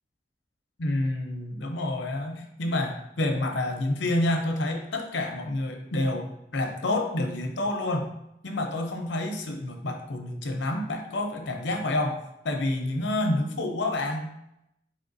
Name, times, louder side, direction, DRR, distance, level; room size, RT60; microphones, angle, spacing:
voice 1, 0.8-8.1 8.4-12.2 12.4-14.3, left 1 dB, 85° left, 4 dB, 0.7 m, -28 dB
4.2 x 3.5 x 2.6 m, 0.82 s
head